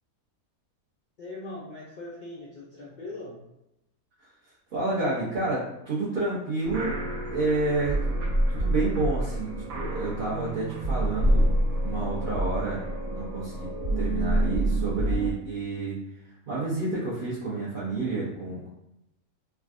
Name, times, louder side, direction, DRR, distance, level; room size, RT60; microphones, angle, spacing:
voice 1, 1.2-3.4, left 2 dB, 80° left, -5 dB, 0.4 m, -40 dB
voice 2, 4.7-7.0 7.3-12.8 13.1-13.7 13.9-16.0 16.5-18.7, right 2 dB, 45° right, -10 dB, 0.8 m, -30 dB
sound 1, 6.6-15.3, right 1 dB, 75° right, 1.0 m, -27 dB
3.5 x 2.2 x 2.4 m, 0.86 s
omnidirectional pair, 1.5 m